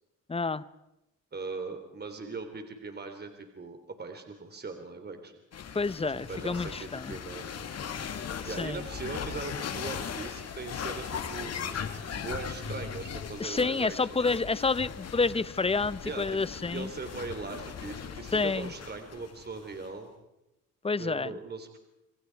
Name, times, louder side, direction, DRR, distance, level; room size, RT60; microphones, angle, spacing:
voice 1, 0.3-0.6 5.7-7.2 8.6-8.8 13.4-16.9 18.3-18.7 20.8-21.3, left 4 dB, 20° left, 17 dB, 0.9 m, -29 dB
voice 2, 1.3-5.3 6.0-7.6 8.5-11.5 12.1-14.2 16.0-16.4 16.7-20.1 21.0-21.8, right 4 dB, 35° right, 6 dB, 3.4 m, -40 dB
sound 1, 5.5-19.9, left 7 dB, 55° left, 2.6 m, -38 dB
28.0 x 27.0 x 4.7 m, 0.91 s
cardioid pair, 90°, 30 cm